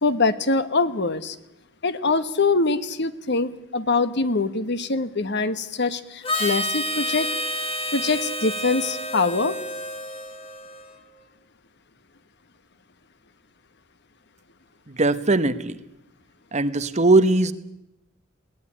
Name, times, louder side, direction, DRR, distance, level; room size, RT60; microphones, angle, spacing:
voice 1, 0.0-1.4 1.8-7.3 7.9-9.6, left 3 dB, 55° left, 13 dB, 1.3 m, -23 dB
Harmonica, 6.2-11.0, left 1 dB, 30° left, 2.8 m, -29 dB
voice 2, 14.9-15.8 16.5-17.5, right 2 dB, 35° right, 11 dB, 1.1 m, -20 dB
21.5 x 18.0 x 10.0 m, 0.88 s
head